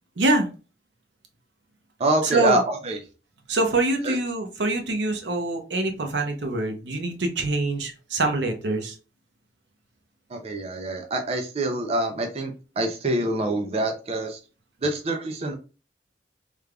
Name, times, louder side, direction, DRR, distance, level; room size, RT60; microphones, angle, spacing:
voice 1, 0.2-0.5 2.2-2.6 3.5-8.9, right 2 dB, 80° right, 4 dB, 0.8 m, -24 dB
voice 2, 2.0-3.0 4.0-4.1 10.3-14.4 14.8-15.5, right 1 dB, 35° right, 4 dB, 0.5 m, -26 dB
3.5 x 3.4 x 2.3 m, 0.32 s
head